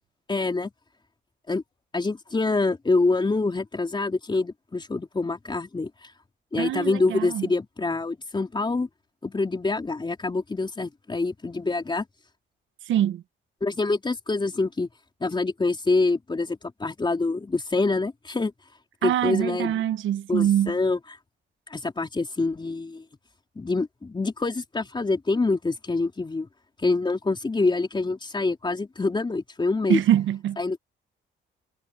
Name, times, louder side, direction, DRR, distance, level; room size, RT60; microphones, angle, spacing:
voice 1, 0.3-0.7 1.5-1.6 1.9-6.1 6.5-8.9 9.2-12.1 13.6-14.9 15.2-18.5 19.0-19.8 20.3-21.2 21.7-23.0 23.6-26.5 26.8-30.0 30.6-30.8, left 3 dB, 25° left, 3.8 m, -26 dB
voice 2, 6.6-7.5 12.9-13.2 19.0-20.8 29.9-30.6, right 11 dB, 75° right, 1.0 m, -24 dB
cardioid pair, 90°, 20 cm